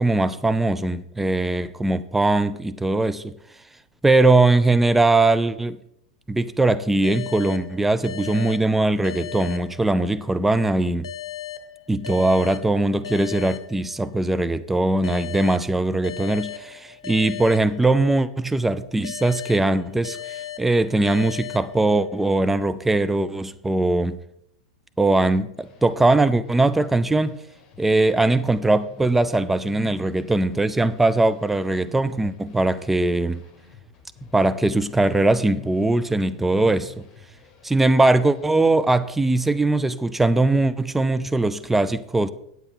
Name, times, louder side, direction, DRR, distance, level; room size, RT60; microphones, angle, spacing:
voice 1, 0.0-3.3 4.0-5.8 6.3-11.1 11.9-24.2 25.0-27.4 27.8-33.4 34.3-37.0 37.6-42.3, right 2 dB, 5° right, 0.4 m, -21 dB
sound 1, 7.0-10.4 11.0-14.4 15.0-18.4 19.0-22.4, left 10 dB, 70° left, 0.8 m, -37 dB
sound 2, 25.5-39.6, left 7 dB, 35° left, 2.3 m, -48 dB
9.3 x 7.7 x 4.3 m
figure-of-eight pair, 90°, 3 cm